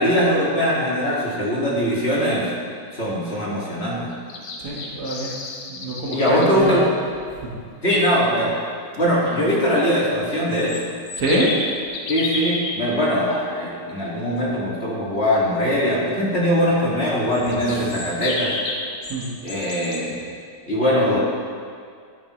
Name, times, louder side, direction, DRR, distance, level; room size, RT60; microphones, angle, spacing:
voice 1, 0.0-2.5 2.9-4.1 6.1-6.9 7.8-8.5 9.0-10.8 12.1-18.5 19.4-20.3 20.7-21.2, equal, 35° left, -6 dB, 2.1 m, -21 dB
sound 1, 4.1-6.5 10.3-12.7 17.3-20.0, left 3 dB, 85° left, 1.7 m, -31 dB
voice 2, 4.6-5.3 5.7-6.8 7.4-7.5 11.2-11.6 17.7-17.9 19.1-19.3, right 1 dB, 65° right, -3 dB, 2.1 m, -25 dB
12.5 x 9.1 x 3.1 m, 2.2 s
omnidirectional pair, 1.9 m